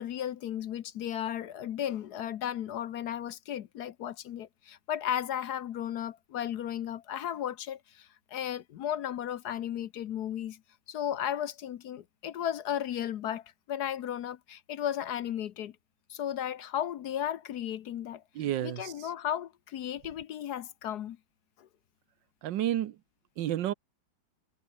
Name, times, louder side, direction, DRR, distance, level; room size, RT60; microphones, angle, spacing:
voice 1, 0.0-10.6 10.9-15.7 16.1-18.2 18.6-21.2 21.6-21.7, left 10 dB, 65° left, 1.2 m, -35 dB
voice 2, 18.3-19.1 22.4-23.0 23.4-23.7, right 12 dB, 75° right, 1.5 m, -31 dB
omnidirectional pair, 2.0 m